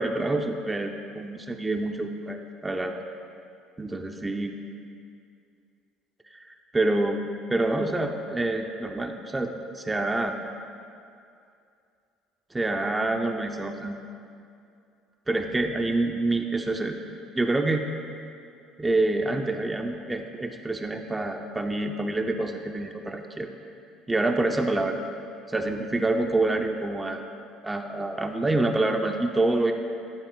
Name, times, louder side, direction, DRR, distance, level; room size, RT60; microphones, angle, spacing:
voice 1, 0.0-2.9 3.8-4.5 6.3-6.4 6.7-10.3 12.5-14.0 15.3-17.0 17.3-17.9 18.8-23.5 24.1-25.0 25.5-27.2 27.6-29.7, right 2 dB, 15° right, 4 dB, 0.5 m, -27 dB
12.0 x 4.1 x 3.8 m, 2.5 s
supercardioid pair, 80°, 0 cm